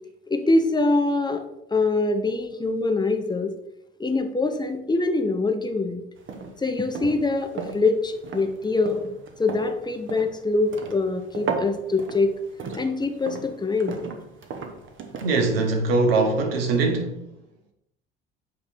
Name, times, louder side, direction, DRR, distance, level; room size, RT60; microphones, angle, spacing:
voice 1, 0.3-3.5 4.0-6.0 6.6-9.0 9.4-12.3 12.7-14.0, left 3 dB, 15° left, 0.8 m, -24 dB
sound 1, 6.2-15.7, right 5 dB, 45° right, 1.1 m, -36 dB
voice 2, 15.2-17.1, right 3 dB, 80° right, 1.0 m, -22 dB
8.0 x 3.2 x 4.3 m
figure-of-eight pair, 55°, 29 cm